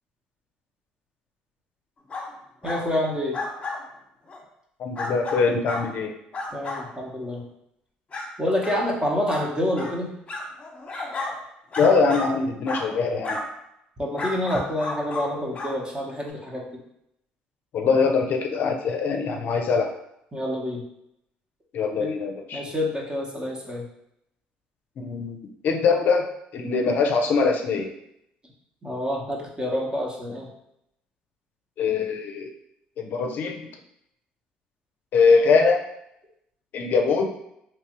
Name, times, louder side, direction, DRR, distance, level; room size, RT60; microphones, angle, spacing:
sound 1, 2.1-2.3 2.6-2.8 3.3-3.8 4.3-4.4 5.0-5.9 6.3-6.8 7.4-7.5 8.1-8.3 8.6-8.8 9.3-9.4 9.7-9.9 10.3-11.3 11.7-12.3 12.7-12.8 13.2-13.4 14.2-15.3 15.5-15.7 16.3-16.4, left 3 dB, 35° left, 1.0 m, -32 dB
voice 1, 2.6-3.4 6.5-7.4 8.4-10.1 14.0-16.6 20.3-20.8 22.0-22.1 22.5-23.8 28.8-30.5, left 1 dB, 20° right, -1 dB, 1.0 m, -27 dB
voice 2, 4.8-6.1 11.8-13.4 17.7-19.9 21.7-22.6 25.0-25.4 25.6-26.2 26.5-27.9 31.8-32.5 33.0-33.6 35.1-35.8 36.7-37.2, left 4 dB, 60° left, 3 dB, 0.5 m, -22 dB
3.3 x 3.0 x 2.9 m, 0.78 s
supercardioid pair, 75°, 4 cm